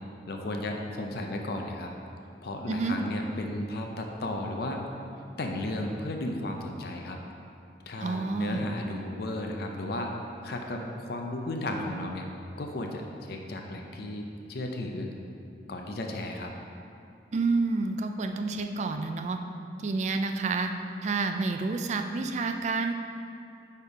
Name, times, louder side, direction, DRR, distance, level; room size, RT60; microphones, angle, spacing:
voice 1, 0.3-1.9 2.4-4.8 5.4-7.2 7.9-10.1 10.4-12.3 12.6-15.1 15.7-16.5, left 1 dB, 55° left, 2 dB, 0.5 m, -34 dB
voice 2, 2.7-3.0 8.0-8.7 17.3-19.4 19.8-20.7 21.0-22.9, right 3 dB, 40° right, 6 dB, 0.3 m, -29 dB
5.2 x 4.4 x 4.8 m, 2.5 s
head